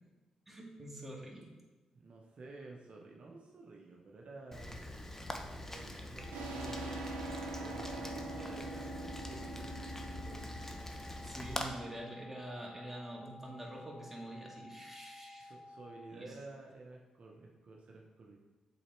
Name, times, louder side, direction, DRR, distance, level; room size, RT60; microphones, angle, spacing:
voice 1, 0.5-1.5 11.2-15.5 16.1-16.4, right 1 dB, 10° right, -2 dB, 2.0 m, -46 dB
voice 2, 1.9-5.4 5.7-7.1 7.3-10.6 15.4-18.4, right 3 dB, 55° right, -1 dB, 0.9 m, -52 dB
Rain, 4.5-11.7, left 1 dB, 15° left, 0.9 m, -44 dB
sound 1, 6.2-16.2, left 2 dB, 45° left, 0.4 m, -54 dB
sound 2, 6.3-11.6, right 2 dB, 85° right, 0.7 m, -44 dB
7.1 x 4.1 x 4.4 m, 1.2 s
hypercardioid pair, 45°, 2 cm